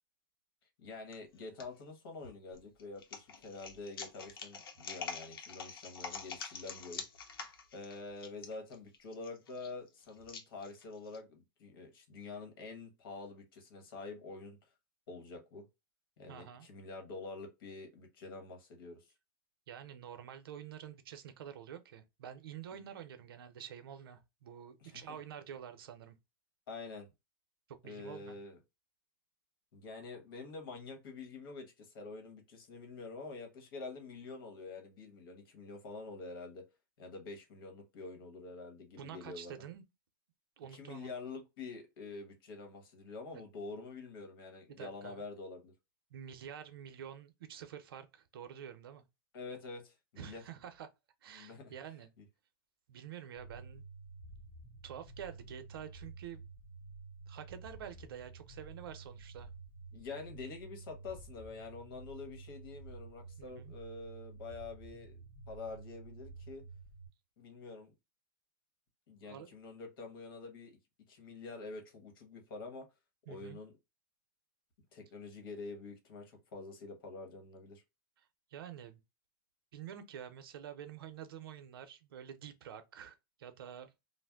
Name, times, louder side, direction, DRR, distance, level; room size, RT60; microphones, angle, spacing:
voice 1, 0.8-7.0 7.7-14.6 15.1-15.6 16.2-19.1 22.7-22.9 24.8-25.0 26.7-27.1 27.8-28.6 29.7-36.6 37.0-39.6 40.7-45.7 49.3-50.4 51.3-51.7 59.9-65.2 65.5-66.6 67.4-67.9 69.1-70.8 71.1-72.9 73.3-73.7 74.9-77.8, left 3 dB, 70° left, 1.2 m, -47 dB
sound 1, 1.1-1.6 2.2-11.2, left 6 dB, 90° left, 0.7 m, -46 dB
voice 2, 16.3-16.7 19.7-26.2 27.7-28.4 39.0-39.8 40.6-41.1 44.7-45.2 46.1-49.0 50.2-50.9 51.2-52.1 52.9-53.8 54.8-56.4 57.3-59.5 63.4-63.7 69.2-69.5 73.3-73.6 78.5-79.0 79.7-83.9, right 9 dB, 85° right, 0.6 m, -48 dB
sound 2, 53.4-67.1, right 3 dB, 45° left, 1.4 m, -51 dB
2.5 x 2.1 x 3.4 m
supercardioid pair, 140°, 12 cm